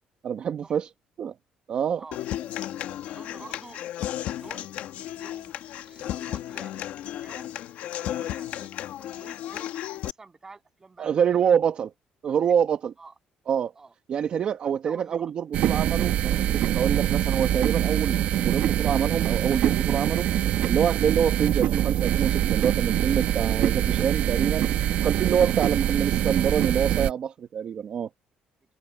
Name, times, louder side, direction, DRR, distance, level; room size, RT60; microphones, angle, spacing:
voice 1, 0.2-0.9 1.2-1.3 1.7-2.0 11.0-11.9 12.2-12.9 13.5-13.7 14.1-20.3 20.6-24.7 25.0-28.1, right 8 dB, 45° right, 1.3 m, -26 dB
Human voice / Acoustic guitar, 2.1-10.1, left 12 dB, 75° left, 1.8 m, -34 dB
voice 2, 2.5-3.8 4.1-4.7 5.1-6.9 7.2-7.5 7.9-8.7 9.0-11.5 12.3-12.6 13.0-13.1 13.8-13.9 14.6-15.3 25.3-25.5, right 4 dB, 20° right, 7.7 m, -49 dB
sound 1, 15.5-27.1, right 11 dB, 70° right, 1.3 m, -24 dB
cardioid pair, 135°, 3 cm